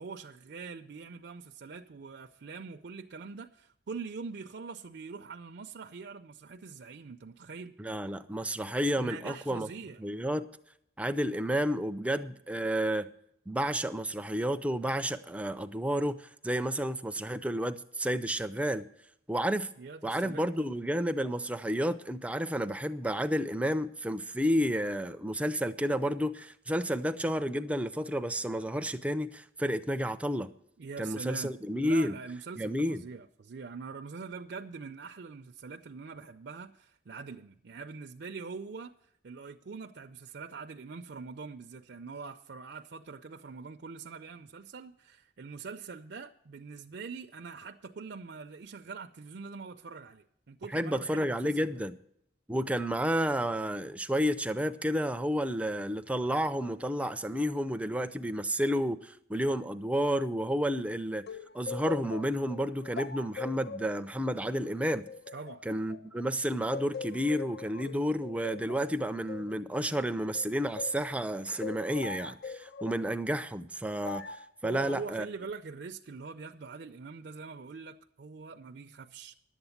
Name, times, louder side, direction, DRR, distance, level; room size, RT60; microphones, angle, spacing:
voice 1, 0.0-7.7 9.0-10.0 19.8-20.7 30.8-31.5 31.8-51.8 65.3-65.7 74.6-79.3, right 4 dB, 60° right, 0.5 m, -43 dB
voice 2, 7.8-9.7 10.0-10.5 11.0-13.1 13.5-18.9 19.3-19.7 20.0-30.5 31.0-32.2 32.6-33.0 50.7-52.0 52.5-61.2 61.5-65.0 65.7-75.3, equal, 5° right, 0.4 m, -31 dB
sound 1, 61.3-66.3 66.7-71.1 71.6-73.0 74.0-74.5, left 5 dB, 60° left, 0.4 m, -42 dB
11.0 x 8.0 x 7.1 m
head